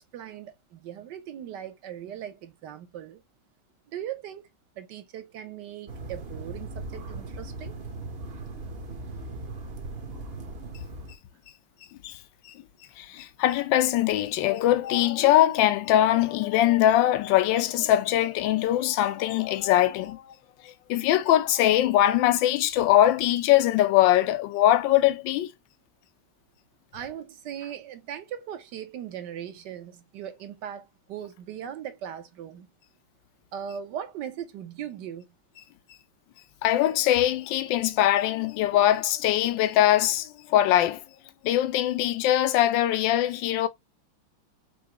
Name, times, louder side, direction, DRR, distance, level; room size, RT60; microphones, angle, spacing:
voice 1, 0.0-3.2 3.9-4.5 4.8-7.8 26.9-32.7 33.5-35.3, right 9 dB, 60° right, 1.4 m, -39 dB
sound 1, 5.9-11.2, right 2 dB, 40° right, 0.9 m, -38 dB
voice 2, 13.0-20.2 20.6-25.5 36.6-41.0 41.4-43.7, left 13 dB, 70° left, 1.3 m, -22 dB
6.3 x 2.8 x 2.8 m
omnidirectional pair, 2.3 m